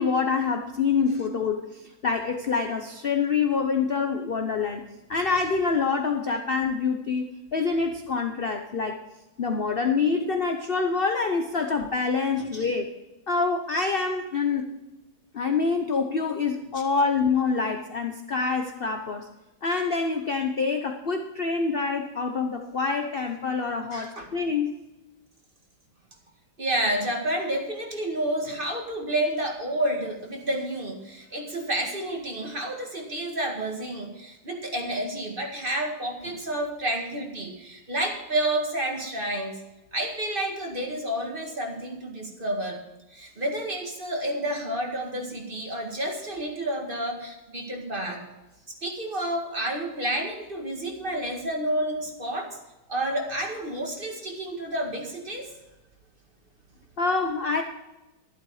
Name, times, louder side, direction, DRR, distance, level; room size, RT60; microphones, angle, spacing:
voice 1, 0.0-9.0 9.4-12.9 13.3-14.7 15.3-19.3 19.6-24.7 57.0-57.6, left 4 dB, 45° left, 5 dB, 0.7 m, -26 dB
voice 2, 23.9-24.3 26.6-39.5 39.9-42.8 43.1-48.3 48.8-52.5 52.9-55.5, right 1 dB, 25° right, 2 dB, 2.0 m, -30 dB
12.0 x 12.0 x 4.8 m, 1.0 s
omnidirectional pair, 2.1 m